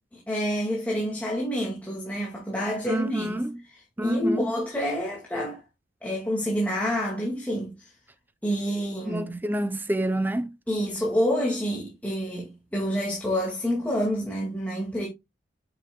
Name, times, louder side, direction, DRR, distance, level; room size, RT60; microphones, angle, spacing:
voice 1, 0.3-3.4 3.7-5.6 6.0-7.9 8.4-9.4 10.7-15.1, equal, 10° left, 2.1 m, -28 dB
voice 2, 2.9-3.5 4.0-4.5 9.0-10.5, right 1 dB, 10° right, 0.5 m, -27 dB
8.6 x 6.6 x 2.3 m
head